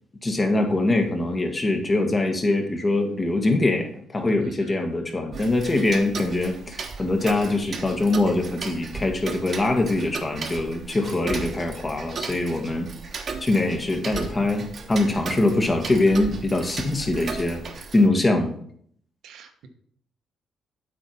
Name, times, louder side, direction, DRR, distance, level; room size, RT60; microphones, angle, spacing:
voice 1, 0.2-12.9 13.4-18.5, left 2 dB, 25° left, 4 dB, 1.6 m, -23 dB
voice 2, 4.4-4.8 19.2-19.7, right 5 dB, 85° right, 7 dB, 1.1 m, -45 dB
Tick-tock, 5.3-18.1, right 4 dB, 50° right, 1.0 m, -36 dB
8.3 x 4.5 x 5.5 m, 0.62 s
cardioid pair, 90°, 0 cm